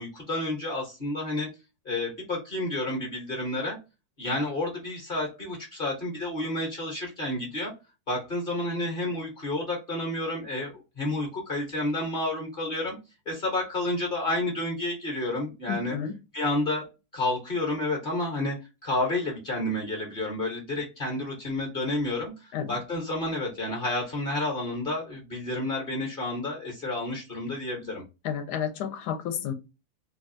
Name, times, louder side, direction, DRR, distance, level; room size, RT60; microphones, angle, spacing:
voice 1, 0.0-1.5 1.9-3.8 4.2-7.7 8.1-13.0 13.3-16.0 16.3-16.9 17.1-22.3 22.7-28.0, left 2 dB, 40° left, 0.8 m, -30 dB
voice 2, 15.7-16.2 22.5-22.8 28.2-29.5, left 8 dB, 80° left, 1.1 m, -31 dB
3.2 x 2.3 x 2.6 m
omnidirectional pair, 1.8 m